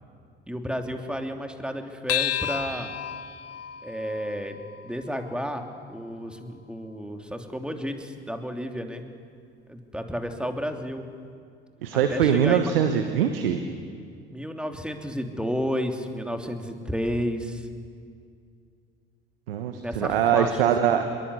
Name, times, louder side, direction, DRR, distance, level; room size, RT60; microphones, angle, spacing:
voice 1, 0.5-2.9 3.8-4.6 4.8-9.0 9.7-11.1 12.1-12.7 14.3-17.7 19.8-21.0, equal, 5° right, 5 dB, 2.9 m, -32 dB
sound 1, 2.1-6.8, left 10 dB, 55° left, 1.4 m, -34 dB
voice 2, 11.8-13.6 19.5-21.0, right 8 dB, 75° right, 7 dB, 1.4 m, -22 dB
26.5 x 22.0 x 8.4 m, 2.2 s
figure-of-eight pair, 55°, 29 cm